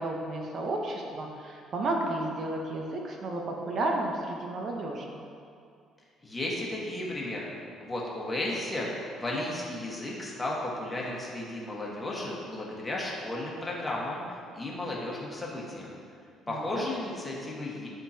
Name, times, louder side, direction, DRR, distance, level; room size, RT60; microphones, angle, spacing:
voice 1, 0.0-5.2 16.5-16.9, right 2 dB, 50° right, 1 dB, 0.7 m, -32 dB
voice 2, 6.2-7.5 7.8-8.9 9.1-16.0 16.5-17.9, left 1 dB, 20° left, -4 dB, 1.3 m, -34 dB
11.0 x 3.7 x 2.8 m, 2.3 s
cardioid pair, 100°, 0 cm